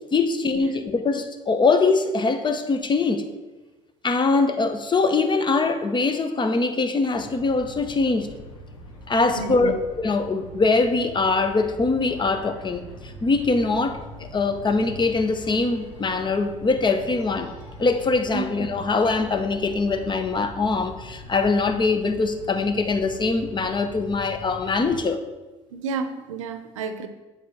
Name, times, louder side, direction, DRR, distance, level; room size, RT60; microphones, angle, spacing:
voice 1, 0.1-3.3 4.0-8.3 9.1-17.5 17.8-25.2, left 3 dB, 30° left, 8 dB, 0.9 m, -23 dB
sound 1, 7.1-25.0, equal, 85° left, 1.4 m, -42 dB
voice 2, 9.3-9.7 18.3-18.4 25.7-27.1, right 5 dB, 90° right, 9 dB, 0.6 m, -30 dB
8.1 x 3.5 x 6.2 m, 1.2 s
hypercardioid pair, 60°, 16 cm